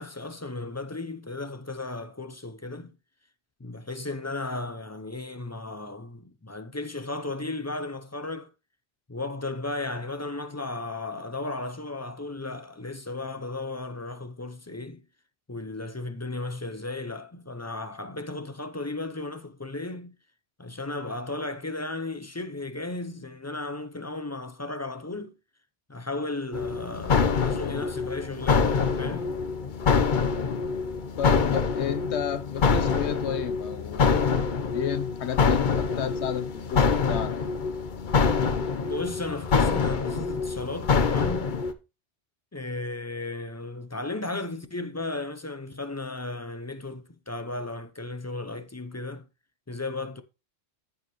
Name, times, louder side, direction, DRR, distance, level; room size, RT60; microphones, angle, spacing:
voice 1, 0.0-2.9 3.6-8.5 9.1-15.0 15.5-20.1 20.6-25.3 25.9-29.3 38.8-41.5 42.5-49.2 49.7-50.2, left 2 dB, 20° left, 0.4 m, -35 dB
sound 1, 26.5-41.7, left 5 dB, 50° left, 0.9 m, -25 dB
voice 2, 31.2-37.3, left 9 dB, 75° left, 1.0 m, -32 dB
14.0 x 4.7 x 3.0 m
omnidirectional pair, 1.1 m